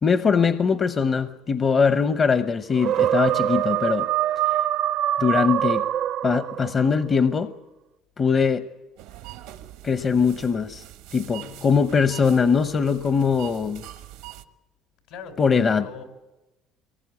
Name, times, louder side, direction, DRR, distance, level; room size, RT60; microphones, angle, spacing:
voice 1, 0.0-4.1 5.2-5.9 6.2-7.5 8.2-8.6 9.8-10.8 11.1-13.8 15.4-15.8, left 5 dB, 35° left, 11 dB, 0.8 m, -21 dB
sound 1, 2.8-6.9, right 12 dB, 70° right, 0.7 m, -24 dB
sound 2, 9.0-14.4, right 13 dB, 85° right, 1.3 m, -43 dB
voice 2, 11.3-11.9 15.1-16.0, left 5 dB, 80° left, 5 dB, 4.5 m, -42 dB
24.0 x 20.5 x 8.5 m, 1.0 s
supercardioid pair, 85°, 0 cm